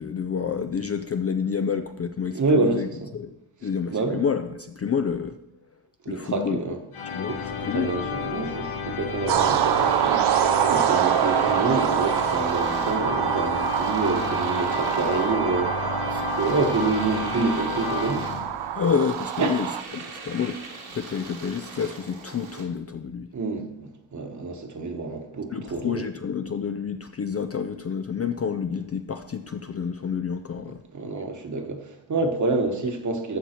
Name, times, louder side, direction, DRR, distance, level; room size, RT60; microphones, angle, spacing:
voice 1, 0.0-2.9 3.1-5.4 6.1-6.6 7.1-7.3 7.6-7.9 16.1-16.3 18.8-23.3 25.5-31.1, left 6 dB, 35° left, 0.4 m, -29 dB
voice 2, 2.3-2.8 3.9-4.2 6.0-6.8 7.3-7.5 7.7-10.3 10.6-18.3 19.4-19.6 23.3-26.1 30.9-33.4, right 3 dB, 35° right, 1.3 m, -27 dB
sound 1, 6.9-18.9, left 6 dB, 85° left, 1.4 m, -32 dB
sound 2, 9.3-19.8, right 10 dB, 55° right, 0.5 m, -25 dB
Domestic sounds home sounds, 9.3-22.7, right 4 dB, 70° right, 2.2 m, -42 dB
14.5 x 5.5 x 4.4 m
cardioid pair, 115°, 48 cm